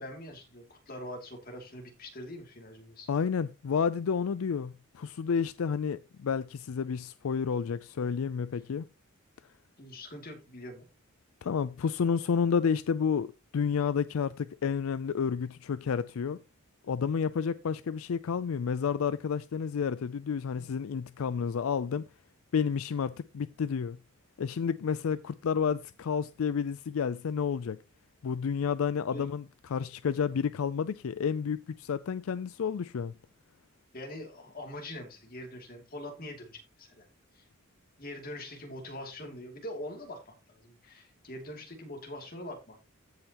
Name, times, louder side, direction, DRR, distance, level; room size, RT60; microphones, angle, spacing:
voice 1, 0.0-3.1 8.0-8.3 9.8-10.8 20.6-20.7 29.1-29.3 33.9-37.1 37.3-37.4 38.0-42.8, left 1 dB, 40° left, 2.7 m, -43 dB
voice 2, 3.1-8.9 11.4-16.4 16.9-22.1 22.5-24.0 24.4-27.8 28.2-29.4 29.7-33.1, left 6 dB, 75° left, 0.4 m, -30 dB
15.0 x 5.6 x 3.0 m
head